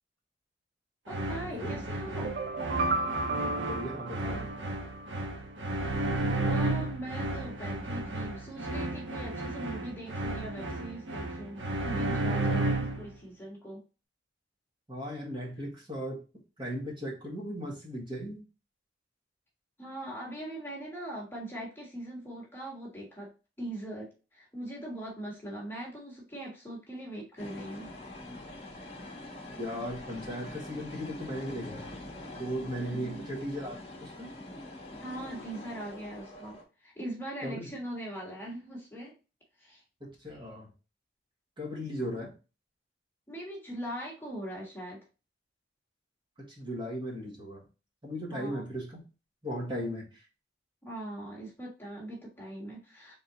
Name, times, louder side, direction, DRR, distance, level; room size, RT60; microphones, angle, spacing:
voice 1, 1.1-2.4 6.4-13.8 19.8-23.3 23.6-27.9 32.8-33.2 35.0-39.2 39.6-39.8 43.3-45.0 48.3-48.7 50.8-53.2, right 1 dB, 10° left, -3 dB, 1.6 m, -41 dB
sound 1, 1.1-13.1, right 2 dB, 85° right, 1.2 m, -33 dB
sound 2, 2.1-5.2, right 2 dB, 55° right, 0.4 m, -33 dB
voice 2, 3.3-4.5 14.9-16.2 16.6-18.4 29.6-31.9 32.4-34.3 37.4-37.7 40.0-40.7 41.6-42.3 46.4-47.6 48.0-49.0 49.4-50.2, equal, 30° right, -3 dB, 1.6 m, -37 dB
sound 3, 27.4-36.6, left 1 dB, 35° left, 1.1 m, -44 dB
4.1 x 3.7 x 2.8 m, 0.31 s
head